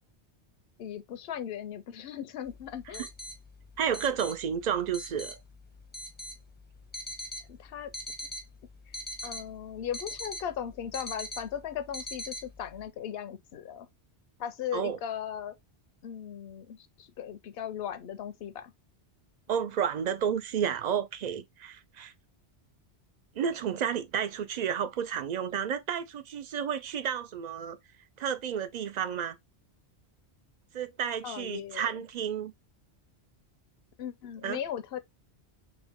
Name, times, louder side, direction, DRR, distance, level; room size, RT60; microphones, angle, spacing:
voice 1, 0.8-3.1 7.5-7.9 8.9-9.0 9.2-13.9 14.4-15.5 16.0-18.7 31.2-32.0 34.0-35.0, left 9 dB, 65° left, 0.8 m, -38 dB
sound 1, 2.4-12.8, equal, 10° left, 0.5 m, -42 dB
voice 2, 3.8-5.4 14.7-15.0 19.5-22.1 23.4-27.8 28.2-29.4 30.7-32.5 34.4-34.6, right 8 dB, 60° right, 0.4 m, -31 dB
3.5 x 3.1 x 3.5 m
omnidirectional pair, 1.2 m